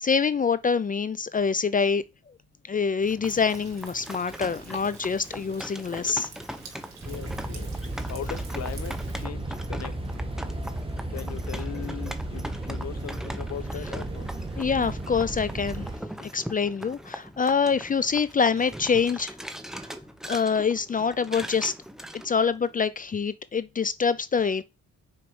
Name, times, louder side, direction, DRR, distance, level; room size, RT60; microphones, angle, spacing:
voice 1, 0.0-2.0 2.7-6.3 14.6-15.9 16.2-19.3 19.8-19.9 20.3-21.7 22.2-24.6, left 5 dB, 30° left, 0.5 m, -25 dB
sound 1, 3.0-22.8, equal, ahead, 0.9 m, -40 dB
Thunder, 3.2-9.3, right 5 dB, 65° right, 2.8 m, -48 dB
voice 2, 7.0-7.7 8.1-9.9 11.1-14.3, left 9 dB, 55° left, 1.1 m, -39 dB
sound 2, 7.0-16.0, right 1 dB, 20° right, 1.5 m, -34 dB
6.2 x 4.6 x 5.3 m
cardioid pair, 90°, 30 cm